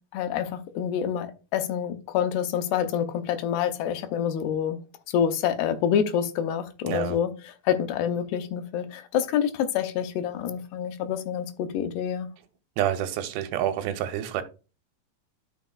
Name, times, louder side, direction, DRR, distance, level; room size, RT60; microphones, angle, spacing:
voice 1, 0.1-4.8 5.1-12.3, left 9 dB, 85° left, 2.9 m, -27 dB
voice 2, 6.9-7.2 12.8-14.4, right 11 dB, 90° right, 3.0 m, -28 dB
12.5 x 5.8 x 2.3 m
omnidirectional pair, 4.7 m